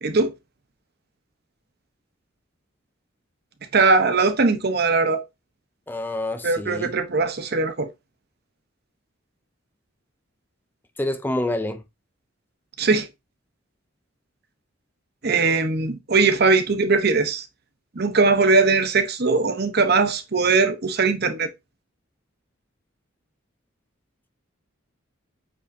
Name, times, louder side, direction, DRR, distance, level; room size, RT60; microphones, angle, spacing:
voice 1, 0.0-0.3 3.7-5.2 6.4-7.9 12.8-13.1 15.2-17.4 17.9-21.5, right 4 dB, 50° right, 0.9 m, -20 dB
voice 2, 5.9-6.9 11.0-11.8, left 1 dB, 10° left, 0.5 m, -27 dB
8.5 x 4.5 x 2.7 m
head